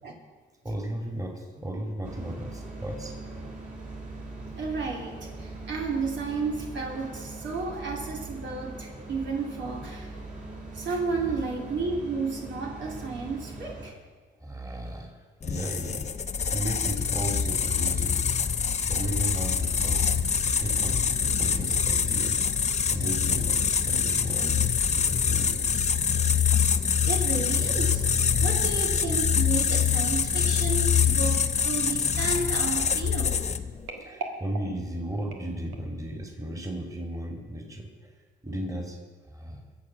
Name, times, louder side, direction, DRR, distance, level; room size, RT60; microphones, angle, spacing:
voice 1, 0.6-3.5 11.2-11.4 11.8-11.9 14.4-15.1 15.4-16.2 16.5-20.0 20.6-22.6 22.9-24.6 24.9-25.6 34.1-37.9 38.4-39.0 39.3-39.6, right 1 dB, 15° right, 2 dB, 2.6 m, -35 dB
sound 1, 2.0-13.9, right 2 dB, 40° right, 4.2 m, -41 dB
voice 2, 4.5-10.1 10.7-13.9 27.1-28.0 28.4-33.4, right 4 dB, 70° right, 0 dB, 2.8 m, -32 dB
sound 2, 15.4-33.8, left 7 dB, 35° left, 0.7 m, -25 dB
sound 3, 31.0-36.0 36.6-36.9 37.1-37.2, right 3 dB, 85° right, 1.8 m, -43 dB
22.0 x 7.4 x 5.9 m, 1.4 s
cardioid pair, 90°, 20 cm